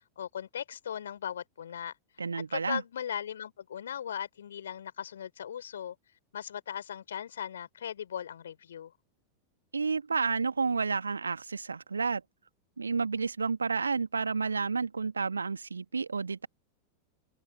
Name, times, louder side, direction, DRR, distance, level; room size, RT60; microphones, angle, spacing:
voice 1, 0.2-1.9 2.3-5.9 6.3-8.9, left 9 dB, 65° left, 4.4 m, -38 dB
voice 2, 2.2-2.8 9.7-12.2 12.8-16.5, right 4 dB, 75° right, 2.1 m, -30 dB
figure-of-eight pair, 90°, 0 cm